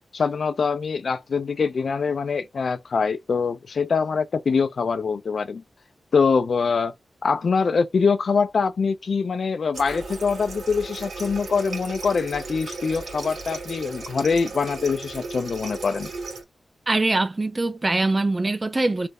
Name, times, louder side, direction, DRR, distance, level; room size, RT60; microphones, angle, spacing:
voice 1, 0.1-5.6 6.1-6.9 7.2-16.1, left 5 dB, 60° left, 0.3 m, -24 dB
Water tap faucet, 9.7-16.4, right 3 dB, 75° right, 1.7 m, -36 dB
voice 2, 16.9-19.1, right 2 dB, 25° right, 0.4 m, -23 dB
3.2 x 2.1 x 3.5 m
wide cardioid pair, 140°, 0 cm